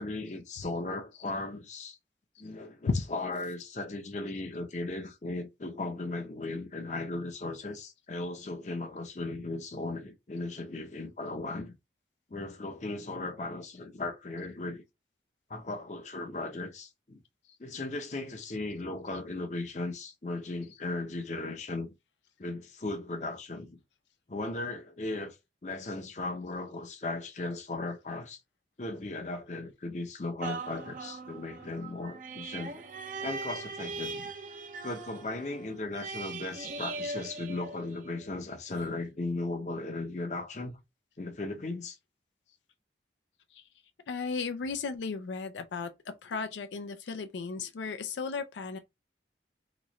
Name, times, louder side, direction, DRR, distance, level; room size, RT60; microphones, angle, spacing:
voice 1, 0.0-2.0 2.4-11.7 12.3-14.8 15.5-17.2 17.6-21.9 22.4-23.8 24.3-25.4 25.6-28.4 28.8-32.9 33.2-34.3 34.8-40.8 41.2-42.0, left 2 dB, 40° left, 0.6 m, -37 dB
sound 1, 30.4-38.3 38.8-38.9, right 3 dB, 45° right, 0.5 m, -40 dB
voice 2, 44.1-48.8, left 4 dB, 90° left, 0.4 m, -34 dB
3.0 x 2.4 x 3.9 m
head